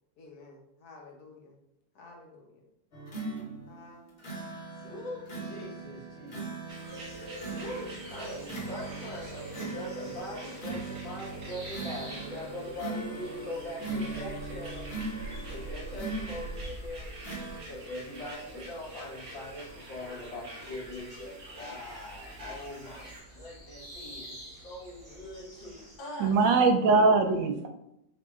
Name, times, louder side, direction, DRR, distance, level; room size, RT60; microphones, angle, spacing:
voice 1, 0.2-1.6 1.9-2.6 3.7-4.1, left 3 dB, 60° left, 1 dB, 1.2 m, -52 dB
sound 1, 2.9-16.7 17.2-17.6, right 3 dB, 40° left, 1.0 m, -40 dB
voice 2, 4.8-6.8 7.6-14.9 15.3-17.1 17.7-26.4, left 1 dB, 90° left, -5 dB, 2.1 m, -42 dB
sound 2, 6.7-23.2, right 1 dB, 55° right, 1.6 m, -48 dB
sound 3, 6.9-26.0, right 1 dB, 35° right, 1.8 m, -45 dB
voice 3, 26.2-27.7, right 3 dB, 80° right, 4 dB, 1.2 m, -22 dB
6.1 x 2.7 x 2.4 m, 0.82 s
omnidirectional pair, 2.0 m